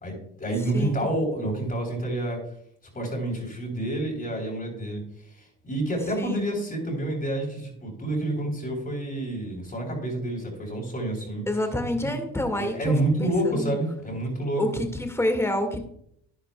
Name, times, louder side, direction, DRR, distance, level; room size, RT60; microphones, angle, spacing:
voice 1, 0.0-2.4 2.9-5.0 5.4-11.5 12.0-12.1 12.6-14.6, right 1 dB, 25° left, 0 dB, 4.0 m, -28 dB
voice 2, 6.2-6.5 11.5-12.9 13.2-13.8 14.6-15.8, left 1 dB, 10° left, 5 dB, 1.9 m, -27 dB
11.0 x 10.0 x 2.3 m, 0.70 s
supercardioid pair, 80°, 34 cm